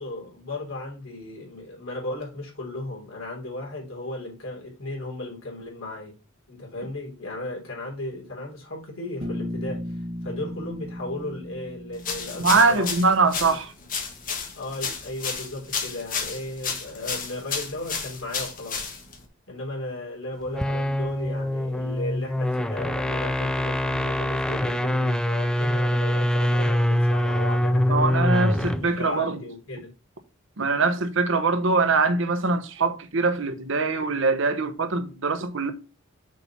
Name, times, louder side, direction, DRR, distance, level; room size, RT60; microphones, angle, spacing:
voice 1, 0.0-6.2 6.5-13.0 13.5-13.6 14.5-18.8 19.5-29.9, left 2 dB, 75° left, 3.6 m, -35 dB
Bass guitar, 9.2-13.2, left 1 dB, 45° right, 1.9 m, -36 dB
sound 1, 12.0-19.2, left 5 dB, 40° left, 1.4 m, -32 dB
voice 2, 12.4-13.7 27.9-29.4 30.6-35.7, right 3 dB, 65° right, 1.0 m, -23 dB
sound 2, 20.4-28.9, equal, 5° left, 0.3 m, -24 dB
6.4 x 4.1 x 5.8 m
head